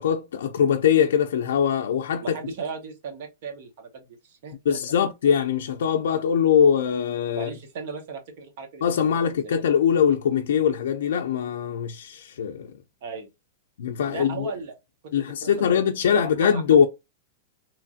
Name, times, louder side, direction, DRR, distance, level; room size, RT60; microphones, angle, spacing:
voice 1, 0.0-2.4 4.7-7.5 8.8-12.7 13.8-14.5 15.1-16.9, left 8 dB, 75° left, 0.4 m, -22 dB
voice 2, 2.2-4.8 7.3-9.5 13.0-13.3 14.1-14.7 15.0-15.1 15.6-15.7 16.1-16.8, right 5 dB, 45° right, 0.8 m, -37 dB
3.0 x 2.4 x 2.5 m
supercardioid pair, 175°, 0 cm